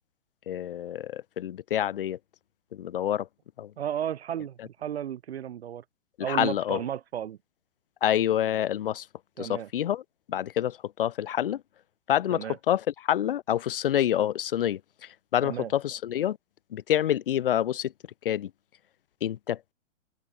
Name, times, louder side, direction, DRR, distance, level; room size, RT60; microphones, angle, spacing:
voice 1, 0.5-2.2 2.7-3.3 3.6-3.7 6.3-6.8 8.0-9.1 9.4-10.0 10.3-11.6 12.1-16.4 16.7-17.9 18.2-18.5 19.2-19.7, left 11 dB, 45° left, 1.0 m, -27 dB
voice 2, 3.8-5.8 6.2-7.4 9.4-9.7 12.3-12.6 15.4-15.7, right 10 dB, 50° right, 1.0 m, -33 dB
open air
hypercardioid pair, 175°, 40 cm